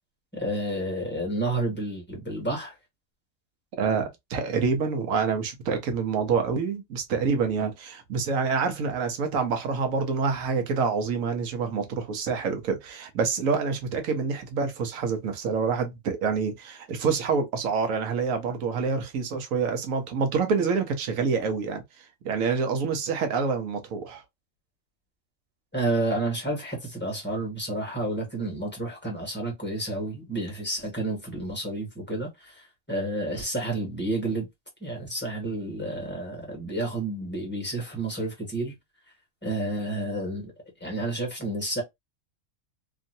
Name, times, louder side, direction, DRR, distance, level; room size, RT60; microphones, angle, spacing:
voice 1, 0.3-2.7 25.7-34.5 34.8-38.7 39.4-40.5 40.8-41.8, right 2 dB, 10° left, 1.3 m, -30 dB
voice 2, 3.8-24.2, right 5 dB, 80° right, 1.1 m, -27 dB
3.0 x 2.7 x 2.6 m
omnidirectional pair, 1.4 m